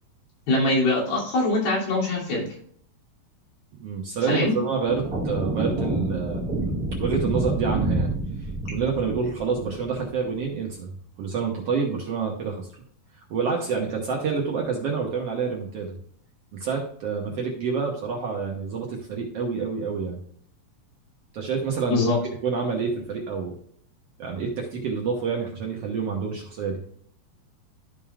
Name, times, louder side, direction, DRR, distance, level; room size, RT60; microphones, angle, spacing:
voice 1, 0.5-2.4 4.3-4.5 21.9-22.2, left 2 dB, 85° left, -4 dB, 4.6 m, -23 dB
voice 2, 3.8-6.7 7.0-8.2 8.7-10.9 11.2-12.7 13.3-16.0 16.5-20.2 21.3-23.5 24.2-26.8, right 5 dB, 60° right, 0 dB, 1.7 m, -28 dB
sound 1, 4.9-10.5, right 2 dB, 40° right, 1.2 m, -28 dB
13.5 x 5.4 x 2.4 m, 0.62 s
omnidirectional pair, 4.1 m